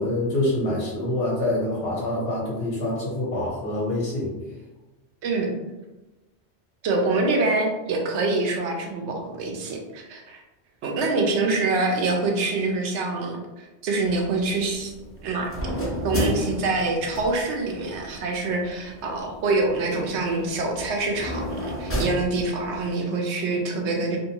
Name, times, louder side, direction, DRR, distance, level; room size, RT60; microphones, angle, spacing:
voice 1, 0.0-4.3, left 1 dB, 60° left, -5 dB, 1.1 m, -26 dB
voice 2, 6.8-10.4 10.8-14.9 15.2-15.5 16.0-24.2, right 3 dB, 80° right, 1 dB, 0.9 m, -25 dB
sound 1, 14.0-22.9, equal, 20° left, 0.4 m, -33 dB
2.7 x 2.2 x 2.7 m, 1.1 s
omnidirectional pair, 1.2 m